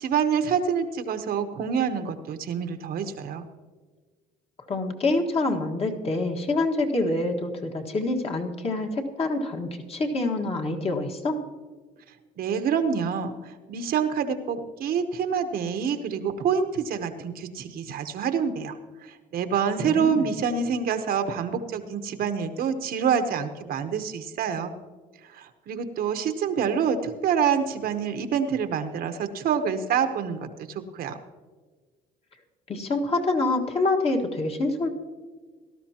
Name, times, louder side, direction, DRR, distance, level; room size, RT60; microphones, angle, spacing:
voice 1, 0.0-3.5 12.4-18.8 19.0-24.7 25.2-31.2, right 7 dB, 65° right, 8 dB, 1.0 m, -27 dB
voice 2, 4.7-11.4 19.8-20.3 32.7-34.9, left 2 dB, 35° left, 2 dB, 1.6 m, -26 dB
18.0 x 12.5 x 2.9 m, 1.4 s
cardioid pair, 110°, 17 cm